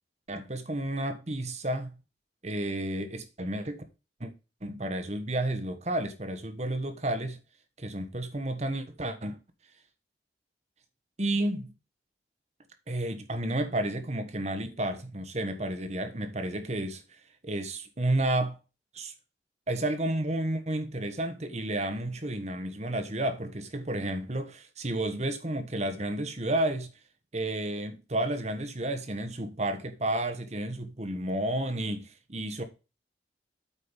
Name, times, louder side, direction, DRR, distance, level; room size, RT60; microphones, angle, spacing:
voice 1, 0.3-2.0 2.4-3.8 4.2-4.3 4.6-7.4 7.8-9.4 11.2-11.7 12.9-17.2 17.4-18.6 18.9-19.1 19.7-26.9 27.3-32.6, right 1 dB, 40° right, 1.4 m, -31 dB
8.6 x 5.4 x 5.2 m
head